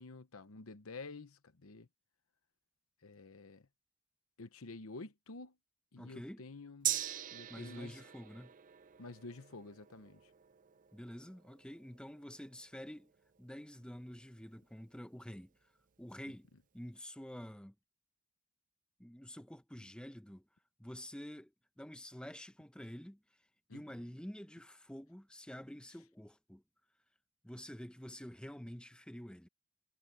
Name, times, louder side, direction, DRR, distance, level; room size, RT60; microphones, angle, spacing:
voice 1, 0.0-1.9 3.0-3.7 4.4-5.5 5.9-7.0 7.3-8.0 9.0-10.3 23.7-23.8, left 3 dB, 70° left, 1.0 m, -50 dB
voice 2, 6.0-6.4 7.5-8.5 10.9-13.1 13.4-15.5 16.0-16.5 16.7-17.7 19.0-20.4 20.8-23.2 23.7-26.6 27.4-29.5, equal, 5° left, 0.8 m, -48 dB
Gong, 6.8-14.6 14.9-15.0, right 12 dB, 35° right, 0.5 m, -44 dB
head